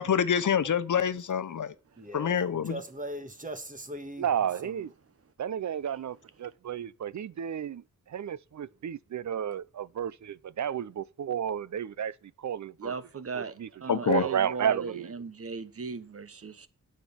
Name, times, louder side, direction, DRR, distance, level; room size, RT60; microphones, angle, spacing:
voice 1, 0.0-1.7 2.1-2.8 13.9-14.2, left 8 dB, 75° left, 0.9 m, -26 dB
voice 2, 2.0-4.2 4.6-4.8, right 1 dB, 25° right, 1.6 m, -40 dB
voice 3, 4.2-4.9 5.4-12.9 13.3-13.7 14.1-15.1, right 9 dB, 65° right, 0.6 m, -32 dB
voice 4, 12.8-16.7, right 5 dB, 50° right, 1.0 m, -38 dB
9.2 x 6.7 x 7.2 m
wide cardioid pair, 125°, 31 cm